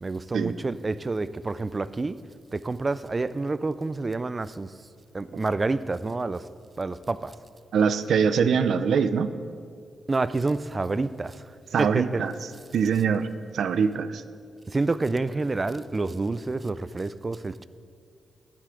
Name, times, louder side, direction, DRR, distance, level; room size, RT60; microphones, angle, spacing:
voice 1, 0.0-2.2 2.5-4.7 5.1-6.4 6.8-7.3 10.1-11.5 11.8-12.2 14.7-17.6, right 3 dB, 30° right, 0.4 m, -28 dB
voice 2, 7.7-9.3 11.7-12.3 12.7-14.2, right 6 dB, 80° right, 0.5 m, -23 dB
14.0 x 11.0 x 3.8 m
cardioid pair, 100°, 0 cm